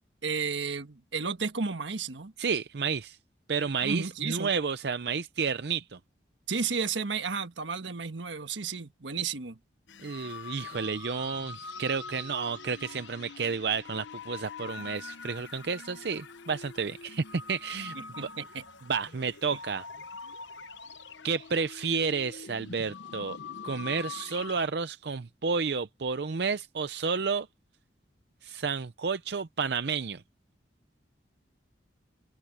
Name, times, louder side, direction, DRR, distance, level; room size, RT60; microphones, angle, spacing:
voice 1, 0.2-2.3 3.8-4.5 6.5-9.6 17.9-18.6, right 5 dB, 90° right, 1.5 m, -33 dB
voice 2, 2.4-3.2 3.5-6.0 10.0-17.9 18.9-19.9 21.2-23.4 23.6-27.5 28.4-30.2, right 5 dB, 65° right, 0.6 m, -31 dB
sound 1, 9.9-24.7, left 5 dB, 90° left, 0.9 m, -44 dB
open air
head